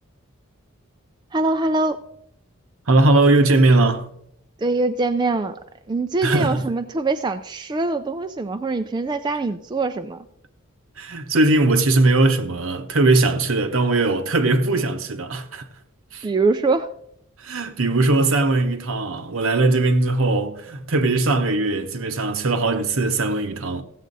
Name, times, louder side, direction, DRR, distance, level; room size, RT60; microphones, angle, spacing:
voice 1, 1.3-2.0 4.6-5.6 5.9-10.2 16.2-16.9, right 3 dB, 20° right, 0.3 m, -23 dB
voice 2, 2.9-4.1 6.2-6.6 11.0-15.6 16.1-16.3 17.4-23.8, right 2 dB, 70° right, 0.9 m, -19 dB
15.5 x 7.4 x 4.0 m
head